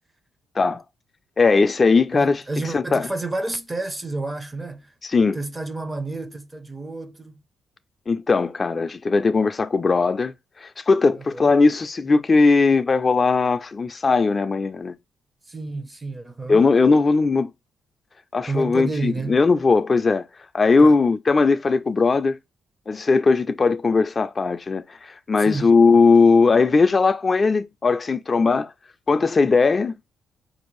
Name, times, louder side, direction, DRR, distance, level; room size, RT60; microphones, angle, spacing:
voice 1, 1.4-2.4 2.7-3.0 5.1-5.4 8.1-10.3 10.6-14.9 16.5-17.5 18.3-20.2 20.5-22.4 22.9-28.7 29.1-29.9, left 4 dB, 30° left, 0.3 m, -18 dB
voice 2, 2.1-4.9 5.3-7.4 11.1-11.6 15.5-16.7 18.5-19.4 20.8-21.0 25.4-25.7, right 2 dB, 20° right, 0.6 m, -30 dB
4.4 x 2.6 x 3.1 m
cardioid pair, 90°, 0 cm